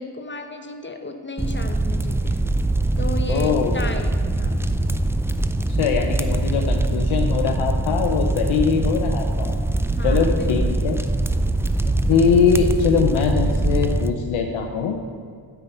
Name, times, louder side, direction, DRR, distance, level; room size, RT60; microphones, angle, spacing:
voice 1, 0.0-2.4 3.0-4.6 10.0-10.7, left 2 dB, 25° left, 6 dB, 0.9 m, -33 dB
sound 1, 1.4-14.1, right 2 dB, 5° right, 0.3 m, -22 dB
voice 2, 3.3-3.9 5.8-9.6 10.0-11.0 11.9-15.0, left 6 dB, 85° left, 2 dB, 0.9 m, -22 dB
9.1 x 5.9 x 8.2 m, 2.2 s
cardioid pair, 85°, 47 cm